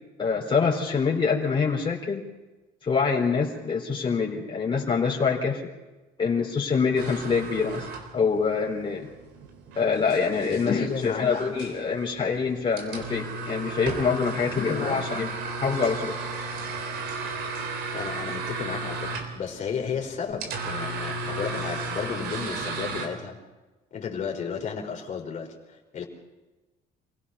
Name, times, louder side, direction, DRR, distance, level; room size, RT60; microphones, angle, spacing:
voice 1, 0.2-2.2 2.8-5.6 6.2-9.1 9.8-15.3 15.6-16.1, left 5 dB, 30° left, -2 dB, 4.0 m, -25 dB
sound 1, 6.9-23.1, right 3 dB, 80° right, 3.9 m, -35 dB
voice 2, 10.4-11.3 14.3-15.0 17.9-23.4 23.9-26.0, left 6 dB, 45° left, 1 dB, 4.3 m, -33 dB
27.0 x 17.0 x 5.6 m, 1.1 s
cardioid pair, 110°, 17 cm